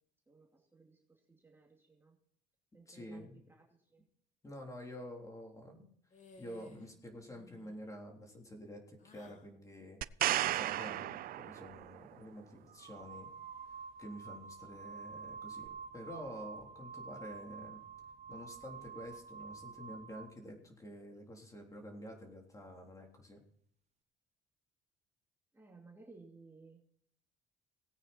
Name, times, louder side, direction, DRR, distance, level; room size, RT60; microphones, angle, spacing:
voice 1, 0.3-2.2 2.7-4.1 25.5-26.8, right 3 dB, 15° right, 0 dB, 2.4 m, -59 dB
voice 2, 2.9-3.4 4.4-5.9 6.4-10.0 10.5-13.3 14.0-17.8 18.3-23.4, equal, 20° left, 1 dB, 3.6 m, -49 dB
sound 1, 6.1-6.9 7.2-7.8 9.0-9.5, left 3 dB, 45° left, 2.3 m, -58 dB
sound 2, 10.0-12.0 15.7-15.8, right 14 dB, 60° right, 0.5 m, -34 dB
sound 3, 11.7-11.9 12.7-20.4, right 6 dB, 40° right, 0.9 m, -49 dB
18.0 x 9.0 x 4.4 m, 0.65 s
cardioid pair, 110°, 17 cm